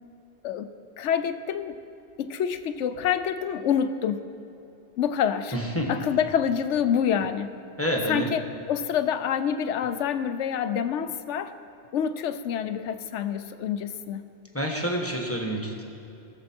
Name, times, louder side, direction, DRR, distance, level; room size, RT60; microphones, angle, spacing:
voice 1, 1.0-1.8 2.2-4.2 5.0-5.6 5.9-7.5 8.1-11.6 11.9-14.3, left 8 dB, 90° left, 11 dB, 0.9 m, -27 dB
voice 2, 5.5-6.0 7.8-8.3 14.5-15.8, equal, 10° left, 0 dB, 1.2 m, -28 dB
18.5 x 7.1 x 4.4 m, 2.8 s
omnidirectional pair, 1.2 m